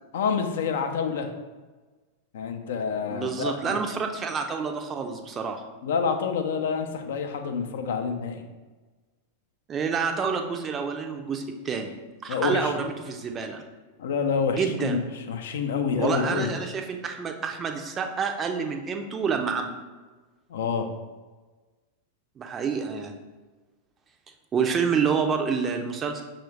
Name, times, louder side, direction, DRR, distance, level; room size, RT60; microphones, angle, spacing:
voice 1, 0.1-1.3 2.3-3.8 5.8-8.4 12.3-12.7 14.0-15.0 15.3-16.5 20.5-20.9, left 6 dB, 60° left, 6 dB, 0.4 m, -27 dB
voice 2, 3.1-5.6 9.7-11.9 12.2-13.6 14.5-15.0 16.0-19.8 22.4-23.1 24.5-26.2, right 6 dB, 25° right, 5 dB, 0.4 m, -28 dB
6.0 x 2.3 x 3.1 m, 1.3 s
figure-of-eight pair, 90°, 0 cm